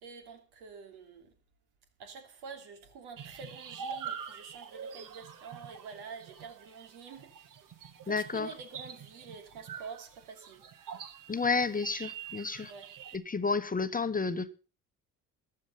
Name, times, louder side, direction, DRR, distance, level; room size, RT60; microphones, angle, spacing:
voice 1, 0.0-1.3 2.0-7.6 8.0-10.6 12.6-12.9, right 5 dB, 75° right, 3.1 m, -47 dB
sound 1, 3.2-13.2, right 7 dB, 55° right, 1.7 m, -45 dB
voice 2, 8.1-8.5 11.3-12.7 13.3-14.5, left 4 dB, 20° left, 1.0 m, -30 dB
14.5 x 10.0 x 5.5 m
hypercardioid pair, 55°, 39 cm